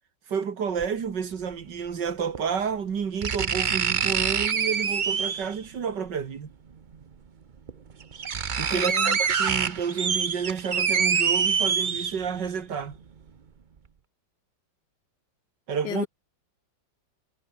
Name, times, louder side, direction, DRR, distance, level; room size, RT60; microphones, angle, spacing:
voice 1, 0.3-6.5 8.6-13.0 15.7-16.1, right 6 dB, 70° right, 2.5 m, -30 dB
sound 1, 0.8-0.9 2.3-2.4 3.2-5.6 6.9-7.0 7.7-7.8 8.0-12.5 12.9-13.0, right 6 dB, 40° right, 0.7 m, -25 dB
voice 2, 8.7-9.2 15.8-16.1, left 12 dB, 70° left, 1.3 m, -33 dB
omnidirectional pair, 2.0 m